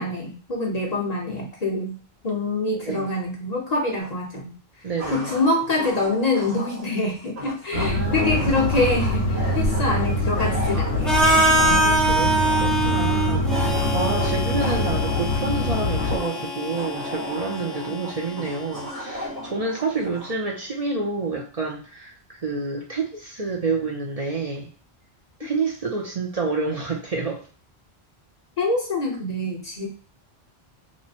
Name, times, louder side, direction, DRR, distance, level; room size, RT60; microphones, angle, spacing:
voice 1, 0.0-2.0 2.2-4.6 5.1-11.3 17.9-18.0 25.4-25.5 28.6-29.9, left 2 dB, 45° left, -1 dB, 0.9 m, -25 dB
sound 1, 4.0-4.1 5.0-20.4, equal, 85° right, 1.4 m, -35 dB
voice 2, 4.8-5.3 7.7-8.5 11.6-13.5 13.9-22.1 22.4-24.7 25.4-27.4, right 4 dB, 45° right, -1 dB, 0.6 m, -28 dB
sound 2, 7.7-16.2, left 1 dB, 65° left, 1.0 m, -24 dB
Harmonica, 11.0-18.9, right 1 dB, ahead, 0.4 m, -24 dB
3.0 x 2.1 x 4.1 m, 0.37 s
omnidirectional pair, 1.0 m